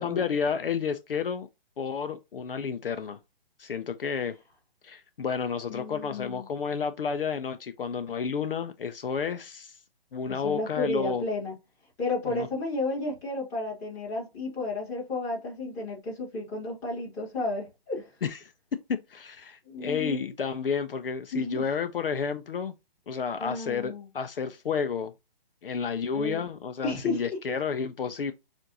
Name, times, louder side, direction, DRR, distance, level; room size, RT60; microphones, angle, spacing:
voice 1, 0.0-1.5 1.8-3.2 3.6-4.3 4.8-9.8 10.1-11.2 12.3-12.5 18.2-18.5 18.9-22.7 23.1-25.1 25.6-28.3, left 6 dB, 65° left, 0.7 m, -31 dB
voice 2, 5.7-6.5 10.3-11.5 12.0-18.1 19.7-20.3 21.3-21.6 23.4-24.1 26.1-26.4 26.8-27.4, left 2 dB, 10° left, 1.9 m, -32 dB
7.2 x 2.6 x 2.8 m
hypercardioid pair, 170°, 30 cm